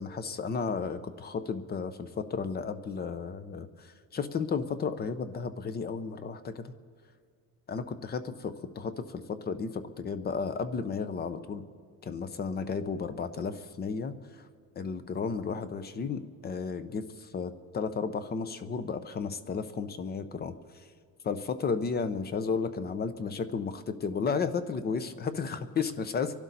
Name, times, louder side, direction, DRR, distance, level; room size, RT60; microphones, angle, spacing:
voice 1, 0.0-6.7 7.7-11.6 12.0-14.5 14.8-20.8 21.2-26.4, left 5 dB, 25° left, 11 dB, 0.7 m, -33 dB
26.0 x 12.0 x 4.1 m, 2.1 s
cardioid pair, 145°, 35 cm